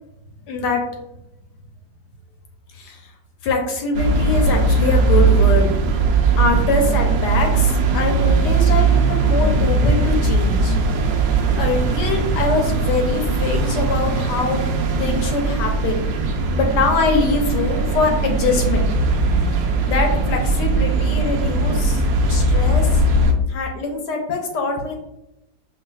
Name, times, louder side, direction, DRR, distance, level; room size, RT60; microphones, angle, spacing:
voice 1, 0.5-0.8 2.7-3.0 3.4-5.7 6.4-10.8 11.6-14.6 15.0-16.0 16.5-18.9 19.4-22.0 22.3-23.0 23.5-25.0, left 3 dB, 70° left, 2 dB, 1.1 m, -23 dB
sound 1, 3.9-23.3, right 3 dB, 75° right, 0.9 m, -19 dB
5.6 x 2.4 x 2.3 m, 0.88 s
omnidirectional pair, 2.1 m